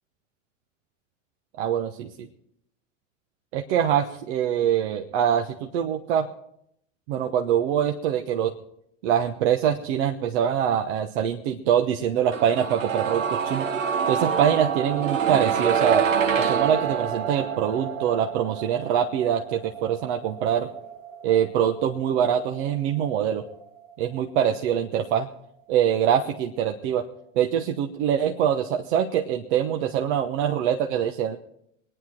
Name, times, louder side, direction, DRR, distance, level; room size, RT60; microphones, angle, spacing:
voice 1, 1.6-2.3 3.5-6.3 7.1-8.5 9.0-13.7 14.1-16.1 16.4-20.7 21.2-23.5 24.0-25.3 25.7-27.1 27.3-31.4, right 9 dB, 60° right, 4 dB, 1.1 m, -24 dB
sound 1, 12.3-24.2 24.4-24.5, right 7 dB, 80° right, 1.5 m, -27 dB
23.5 x 10.0 x 4.5 m, 0.74 s
hypercardioid pair, 90°, 38 cm